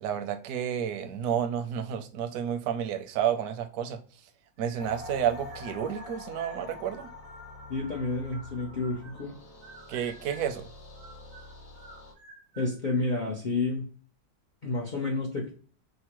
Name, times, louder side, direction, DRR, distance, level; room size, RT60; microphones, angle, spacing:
voice 1, 0.0-4.0 4.6-7.1 9.9-10.7, right 9 dB, 70° right, 0.8 m, -30 dB
sound 1, 4.6-5.2 5.5-9.3 9.6-10.6 10.9-12.8, right 3 dB, 90° right, 1.3 m, -51 dB
sound 2, 4.8-12.1, left 2 dB, 50° left, 0.8 m, -46 dB
voice 2, 7.7-9.4 12.6-13.9 14.6-15.5, left 3 dB, 80° left, 0.4 m, -30 dB
5.3 x 2.1 x 2.9 m
omnidirectional pair, 1.8 m